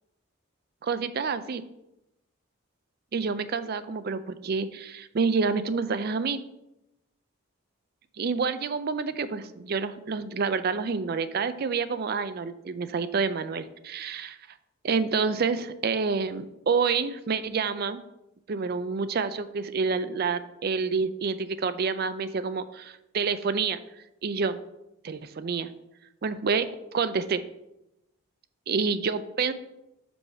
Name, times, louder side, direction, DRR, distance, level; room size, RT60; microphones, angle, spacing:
voice 1, 0.8-1.6 3.1-6.4 8.2-14.4 14.8-18.0 18.5-23.8 24.2-24.6 25.0-25.7 26.2-26.7 26.9-27.4 28.7-29.5, right 5 dB, 45° right, 12 dB, 0.4 m, -28 dB
5.2 x 4.8 x 5.7 m, 0.89 s
head